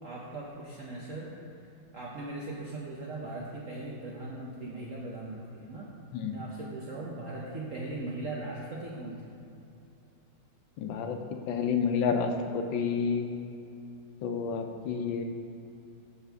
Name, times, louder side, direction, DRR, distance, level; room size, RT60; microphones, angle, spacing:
voice 1, 0.0-1.3 1.6-5.9 6.3-9.4, right 2 dB, 65° right, -4 dB, 0.8 m, -39 dB
voice 2, 10.8-11.2 11.5-13.3 14.2-15.2, left 6 dB, 75° left, 5 dB, 1.3 m, -29 dB
12.5 x 4.3 x 3.4 m, 2.7 s
omnidirectional pair, 2.3 m